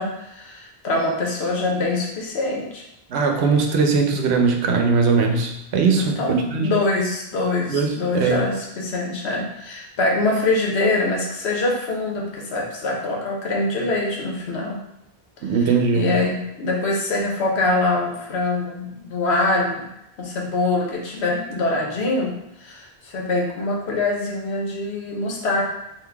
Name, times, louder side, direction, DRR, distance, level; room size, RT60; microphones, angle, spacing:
voice 1, 0.0-2.8 6.0-14.8 15.9-19.9 20.2-25.6, left 2 dB, 85° left, -1 dB, 1.1 m, -24 dB
voice 2, 3.1-6.7 7.7-8.4 15.4-16.1, right 5 dB, 90° right, 3 dB, 0.9 m, -20 dB
3.9 x 2.5 x 3.4 m, 0.83 s
omnidirectional pair, 1.1 m